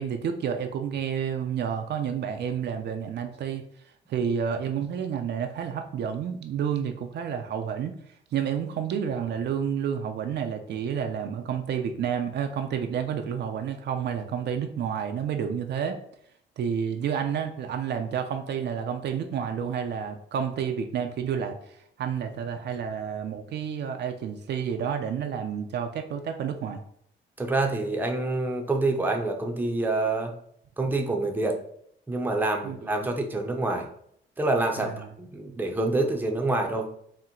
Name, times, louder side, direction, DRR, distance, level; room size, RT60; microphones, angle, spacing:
voice 1, 0.0-3.7 4.1-7.9 8.3-16.0 16.6-26.8 32.6-33.1 34.8-35.1, right 7 dB, 60° right, 5 dB, 0.5 m, -30 dB
voice 2, 27.4-30.3 30.8-31.6 32.1-33.9 34.4-36.9, right 2 dB, 10° right, 2 dB, 0.6 m, -27 dB
4.3 x 2.1 x 3.7 m, 0.68 s
cardioid pair, 90°, 20 cm